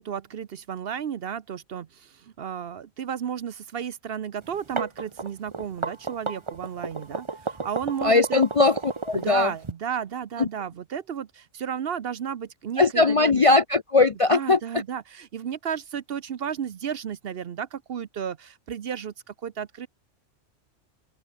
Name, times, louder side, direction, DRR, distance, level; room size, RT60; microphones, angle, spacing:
voice 1, 0.0-8.4 9.1-13.4 14.3-19.9, right 8 dB, 55° right, 0.9 m, -33 dB
sound 1, 4.5-9.7, right 3 dB, 25° right, 1.1 m, -32 dB
voice 2, 8.0-8.8 9.1-9.5 10.4-10.5 12.8-14.8, left 3 dB, 40° left, 0.5 m, -20 dB
open air
omnidirectional pair, 1.3 m